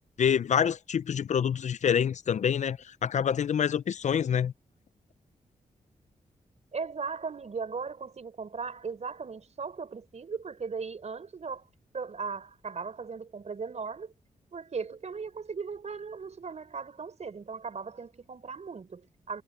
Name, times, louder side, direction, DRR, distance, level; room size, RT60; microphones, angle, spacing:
voice 1, 0.2-4.5, left 8 dB, 60° left, 0.5 m, -26 dB
voice 2, 6.7-11.7 11.9-14.1 14.5-19.4, right 5 dB, 55° right, 4.4 m, -38 dB
cardioid pair, 60°, 14 cm